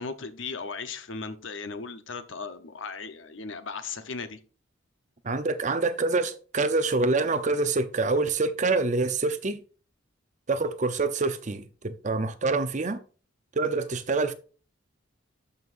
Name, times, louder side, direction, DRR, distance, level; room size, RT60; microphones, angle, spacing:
voice 1, 0.0-4.4, left 4 dB, 65° left, 0.9 m, -37 dB
voice 2, 5.2-9.6 10.5-13.0 13.6-14.3, right 3 dB, 35° right, 0.6 m, -26 dB
12.5 x 5.5 x 2.5 m
head